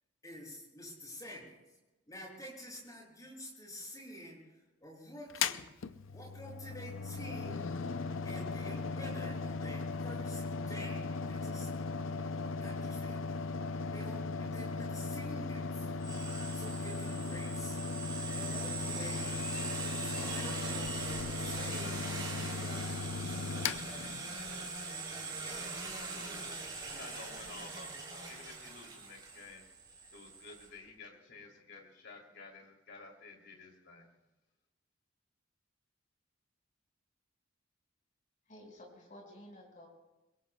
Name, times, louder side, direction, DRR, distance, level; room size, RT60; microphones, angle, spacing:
voice 1, 0.2-1.8 2.1-5.7 6.1-7.7 8.2-11.7 12.6-13.2 13.9-15.9 16.5-17.8 18.4-22.0 22.3-24.5 25.2-25.7 26.6-26.8, equal, 20° left, -2 dB, 6.9 m, -49 dB
Mechanical fan, 5.3-24.7, left 4 dB, 85° left, 0.6 m, -38 dB
sound 1, 16.0-30.7, right 3 dB, 25° right, 3.5 m, -42 dB
voice 2, 26.1-26.5 26.8-29.7 30.1-34.1, left 3 dB, 60° left, 1 dB, 3.1 m, -52 dB
voice 3, 38.5-39.9, left 1 dB, 40° left, 0 dB, 5.3 m, -53 dB
27.0 x 22.5 x 2.3 m, 1.1 s
head